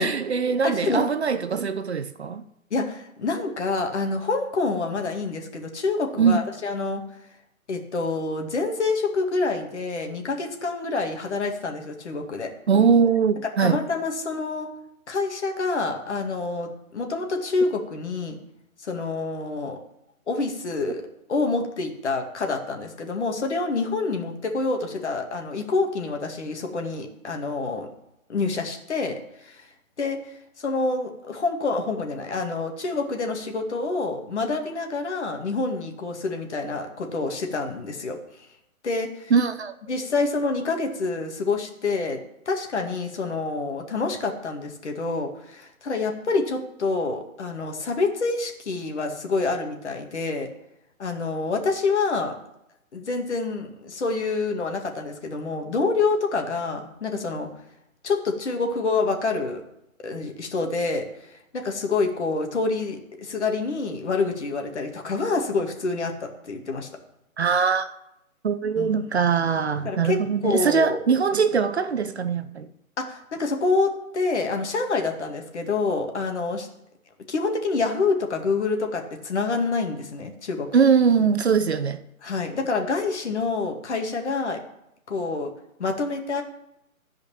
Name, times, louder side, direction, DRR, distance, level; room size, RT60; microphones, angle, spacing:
voice 1, 0.0-2.4 6.2-6.4 12.7-13.8 39.3-39.7 67.4-67.9 68.4-72.7 80.7-82.0, right 6 dB, 50° right, 0.8 m, -21 dB
voice 2, 0.6-1.0 2.7-7.0 7.7-12.5 13.6-14.7 15.1-18.4 18.8-19.8 20.3-21.0 21.3-27.9 28.3-29.6 30.0-30.2 30.6-38.2 38.8-39.3 39.9-42.2 42.5-50.5 51.0-52.3 52.9-57.5 58.0-59.6 60.0-66.9 68.8-69.0 69.8-70.2 70.4-71.0 73.0-76.7 77.3-80.7 82.2-84.6 85.1-85.5 85.8-86.4, left 3 dB, 50° left, 2.2 m, -27 dB
13.5 x 5.2 x 8.5 m
figure-of-eight pair, 155°, 43 cm